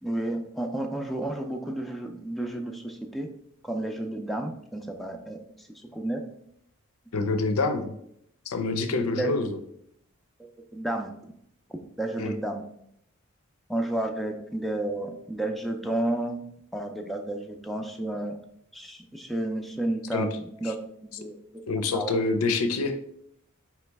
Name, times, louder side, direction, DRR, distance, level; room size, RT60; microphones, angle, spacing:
voice 1, 0.0-3.3 3.6-6.2 7.8-7.9 8.9-9.3 10.4-11.2 12.0-12.6 13.7-16.4 16.7-18.4 18.7-20.8 21.0-21.4 21.9-22.2, right 1 dB, ahead, 2 dB, 0.3 m, -31 dB
voice 2, 7.1-7.9 8.5-9.6 12.2-12.3 20.1-20.3 21.7-23.0, left 3 dB, 85° left, 8 dB, 0.5 m, -26 dB
4.7 x 3.0 x 3.3 m, 0.71 s
head